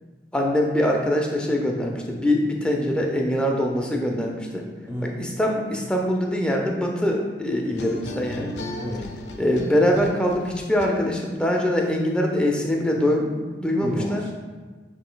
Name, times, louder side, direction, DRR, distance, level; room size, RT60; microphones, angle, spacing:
voice 1, 0.3-4.6 5.0-8.5 9.4-14.2, left 1 dB, 5° left, 0 dB, 0.4 m, -23 dB
voice 2, 4.9-5.2 8.7-9.1 13.8-14.3, equal, 15° right, -3 dB, 0.8 m, -31 dB
sound 1, 7.7-11.4, left 1 dB, 75° left, 0.5 m, -36 dB
7.0 x 3.2 x 2.2 m, 1.3 s
head